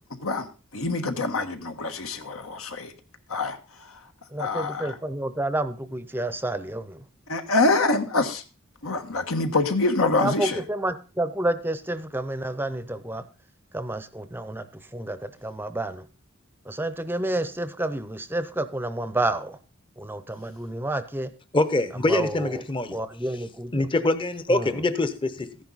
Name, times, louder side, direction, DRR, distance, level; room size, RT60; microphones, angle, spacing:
voice 1, 0.2-2.9 3.3-4.0 4.4-4.9 7.3-8.4 8.8-10.6, left 3 dB, 85° left, 1.5 m, -25 dB
voice 2, 4.3-7.0 10.2-13.3 13.7-16.1 16.6-19.6 20.0-21.3 22.1-22.6 22.9-23.9 24.5-24.7, right 1 dB, 10° right, 0.6 m, -30 dB
voice 3, 21.5-23.0 23.7-25.6, left 2 dB, 25° left, 0.8 m, -24 dB
14.0 x 10.5 x 4.0 m
head